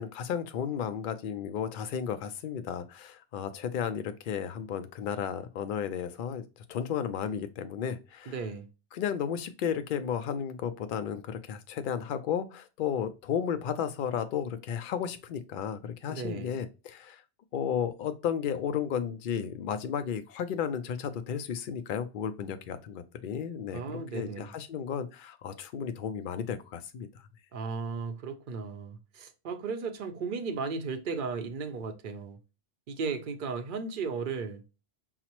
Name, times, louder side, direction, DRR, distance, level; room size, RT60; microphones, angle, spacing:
voice 1, 0.0-8.4 8.9-17.2 17.5-23.8 24.1-27.1, left 8 dB, 60° left, 0.6 m, -33 dB
voice 2, 8.3-8.7 16.1-16.5 23.7-24.5 27.5-32.4 32.9-34.6, right 5 dB, 55° right, 0.6 m, -35 dB
5.7 x 2.0 x 2.9 m
omnidirectional pair, 1.2 m